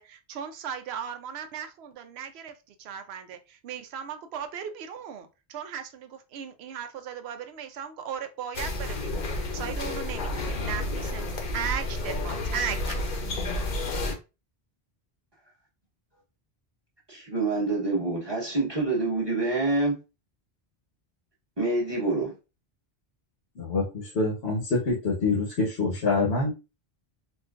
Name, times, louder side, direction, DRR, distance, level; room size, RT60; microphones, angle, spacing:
voice 1, 0.0-13.0, right 8 dB, 85° right, 0.8 m, -37 dB
sound 1, 8.5-14.1, left 2 dB, 55° left, 0.7 m, -31 dB
voice 2, 17.1-20.0 21.6-22.3, right 2 dB, 25° right, 1.1 m, -26 dB
voice 3, 23.6-26.5, left 3 dB, 85° left, 1.2 m, -26 dB
4.3 x 2.2 x 2.4 m
omnidirectional pair, 1.0 m